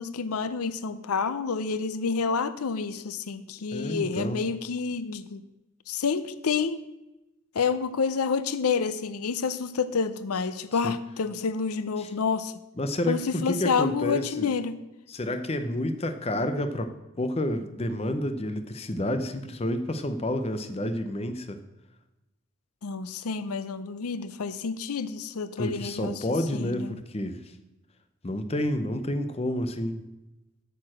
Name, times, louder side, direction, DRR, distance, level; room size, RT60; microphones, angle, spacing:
voice 1, 0.0-5.4 5.9-6.8 7.5-12.5 13.1-14.8 22.8-26.2 26.5-27.0, left 5 dB, 90° left, 14 dB, 0.6 m, -29 dB
voice 2, 3.7-4.4 10.7-10.9 12.0-12.1 12.8-14.5 15.1-21.6 25.6-27.4 28.2-30.0, left 1 dB, 25° left, 9 dB, 0.6 m, -30 dB
8.7 x 6.8 x 6.2 m, 0.96 s
head